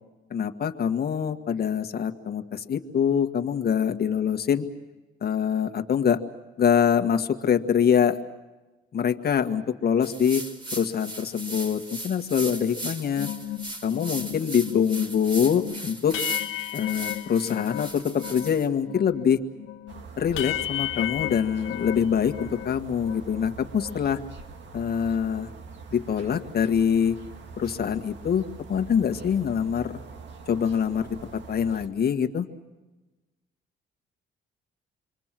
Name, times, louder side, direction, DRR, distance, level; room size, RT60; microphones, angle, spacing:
voice 1, 0.3-4.6 5.2-6.2 6.6-8.2 8.9-10.5 10.7-13.3 13.8-16.2 16.7-19.4 20.2-24.2 24.7-25.5 25.9-27.2 27.6-30.0 30.5-32.5, left 8 dB, 50° left, 5 dB, 1.7 m, -24 dB
sound 1, 10.0-18.7, right 1 dB, 25° right, 3.4 m, -37 dB
sound 2, 13.2-18.6 18.9-22.7 23.0-24.2, left 15 dB, 85° left, 0.9 m, -34 dB
sound 3, 19.9-31.9, right 5 dB, 65° right, 2.2 m, -43 dB
28.5 x 23.5 x 7.6 m, 1.1 s
cardioid pair, 90°, 20 cm